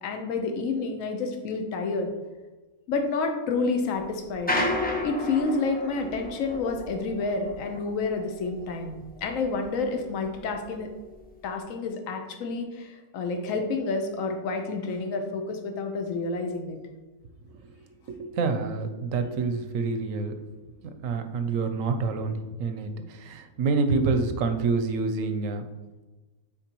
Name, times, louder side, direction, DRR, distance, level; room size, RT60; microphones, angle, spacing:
voice 1, 0.0-2.1 2.9-4.5 5.0-10.9 11.4-16.8, left 3 dB, 65° left, 4 dB, 1.2 m, -29 dB
sound 1, 4.3-9.9 10.2-11.5, left 2 dB, 15° left, 0.3 m, -32 dB
voice 2, 18.1-20.3 21.0-22.9 23.2-25.6, right 4 dB, 65° right, 8 dB, 1.0 m, -27 dB
8.9 x 4.5 x 3.0 m, 1.2 s
omnidirectional pair, 1.6 m